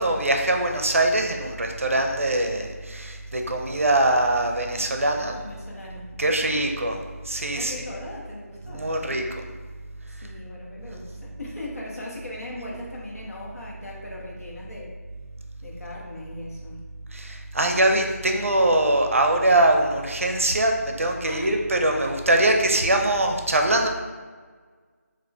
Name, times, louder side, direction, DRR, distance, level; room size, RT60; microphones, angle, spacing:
voice 1, 0.0-5.4 6.2-7.0 7.3-7.7 8.6-9.2 17.1-23.9, right 1 dB, 55° right, 3 dB, 0.5 m, -22 dB
voice 2, 5.3-6.6 7.5-8.9 10.1-14.9 15.6-16.8 21.2-21.6 21.9-22.2, left 1 dB, 65° left, -4 dB, 1.2 m, -39 dB
4.2 x 2.5 x 3.3 m, 1.5 s
figure-of-eight pair, 170°, 9 cm